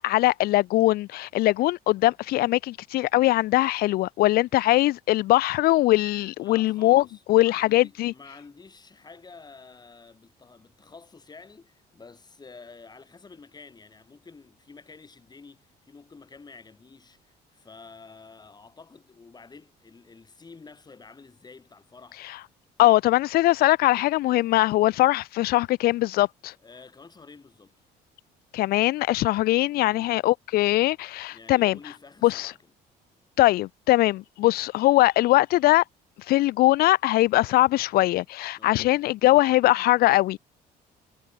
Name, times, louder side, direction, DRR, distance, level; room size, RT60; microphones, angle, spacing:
voice 1, 0.0-8.1 22.8-26.5 28.5-31.8 32.2-32.5 33.4-35.8 36.3-40.4, left 17 dB, 65° left, 0.4 m, -21 dB
voice 2, 6.4-22.5 26.6-27.7 29.7-30.2 31.3-32.6 38.5-39.0, left 4 dB, 25° left, 4.6 m, -49 dB
cardioid pair, 110°, 17 cm